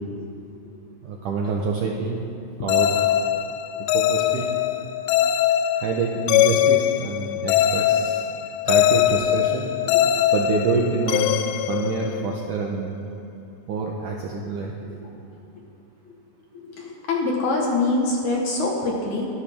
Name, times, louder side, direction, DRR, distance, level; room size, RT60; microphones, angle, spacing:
voice 1, 0.2-0.6 9.8-10.1 14.8-15.1 16.1-16.2 16.5-19.3, left 2 dB, 60° left, -2 dB, 2.3 m, -25 dB
voice 2, 1.0-2.2 2.6-2.9 3.9-4.5 5.8-8.3 8.7-9.7 10.3-11.3 11.7-13.0 13.7-14.7, right 4 dB, 75° right, -1 dB, 1.9 m, -26 dB
sound 1, 2.7-12.5, left 11 dB, 85° left, 2.6 m, -22 dB
22.5 x 11.5 x 3.6 m, 2.8 s
omnidirectional pair, 4.8 m